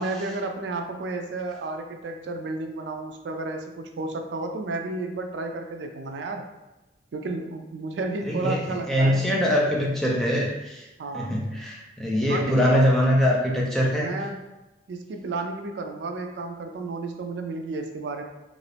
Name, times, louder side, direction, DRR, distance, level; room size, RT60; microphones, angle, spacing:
voice 1, 0.0-6.5 7.1-9.2 11.0-11.3 12.2-12.9 13.9-14.4 14.9-18.2, right 3 dB, 70° right, 4 dB, 0.3 m, -32 dB
voice 2, 8.3-10.9 11.1-14.1, equal, ahead, -4 dB, 0.4 m, -23 dB
2.8 x 2.6 x 3.2 m, 0.99 s
head